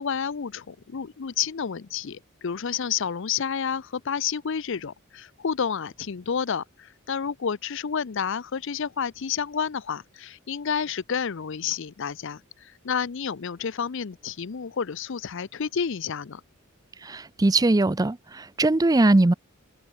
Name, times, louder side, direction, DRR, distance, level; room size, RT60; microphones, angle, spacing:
voice 1, 0.0-16.4, left 7 dB, 60° left, 0.6 m, -30 dB
voice 2, 17.0-19.3, right 2 dB, 20° right, 0.5 m, -21 dB
head